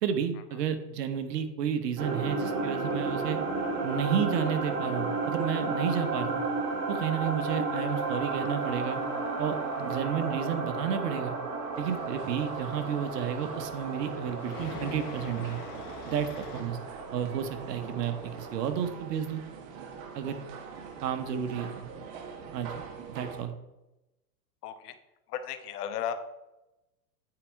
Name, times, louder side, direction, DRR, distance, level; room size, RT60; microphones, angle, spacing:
voice 1, 0.0-3.4 3.8-6.4 6.9-9.0 9.4-11.3 11.8-15.6 16.0-16.8 17.1-19.4 20.1-20.4 21.0-21.9 22.5-23.5, right 8 dB, 70° right, 9 dB, 1.2 m, -31 dB
sound 1, 2.0-18.7, right 3 dB, 35° right, 2.3 m, -33 dB
Tools, 7.7-16.6, left 7 dB, 50° left, 1.5 m, -48 dB
sound 2, 11.7-23.4, right 6 dB, 50° right, 1.6 m, -45 dB
voice 2, 24.6-24.9 25.3-26.1, left 9 dB, 65° left, 9 dB, 1.1 m, -34 dB
9.0 x 4.9 x 4.6 m, 0.96 s
hypercardioid pair, 105°, 50 cm